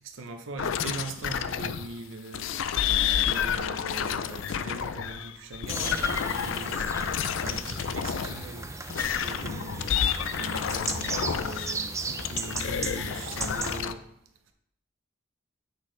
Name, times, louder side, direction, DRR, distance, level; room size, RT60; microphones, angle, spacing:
voice 1, 0.0-2.6 3.2-6.8 7.4-14.0, right 2 dB, 80° right, 5 dB, 0.7 m, -41 dB
sound 1, 0.6-1.9 2.3-8.5 8.9-11.8 12.2-13.9, left 8 dB, 75° left, 0.4 m, -30 dB
sound 2, 5.7-13.8, right 3 dB, 15° right, 0.4 m, -36 dB
8.2 x 6.2 x 3.2 m, 0.78 s
head